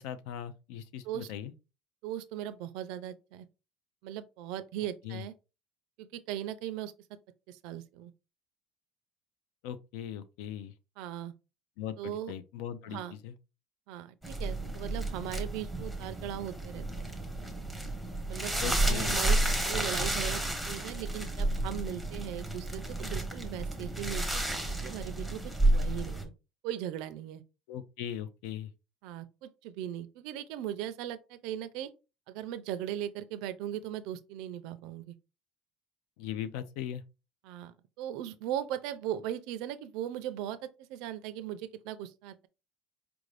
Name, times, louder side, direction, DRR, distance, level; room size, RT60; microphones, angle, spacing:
voice 1, 0.0-1.5 5.0-5.2 9.6-10.7 11.8-13.3 18.6-19.2 27.7-28.7 36.2-37.0, left 10 dB, 85° left, 0.5 m, -39 dB
voice 2, 2.0-3.5 4.0-5.3 6.0-6.9 7.5-8.1 11.0-11.3 12.0-12.3 12.9-13.1 13.9-17.1 18.3-18.5 18.8-19.4 19.6-26.3 26.6-27.4 29.0-31.9 32.3-35.2 37.4-42.5, right 11 dB, 70° right, 0.4 m, -38 dB
sound 1, 14.2-26.2, right 1 dB, ahead, 0.7 m, -31 dB
4.7 x 2.5 x 3.2 m
cardioid pair, 170°, 0 cm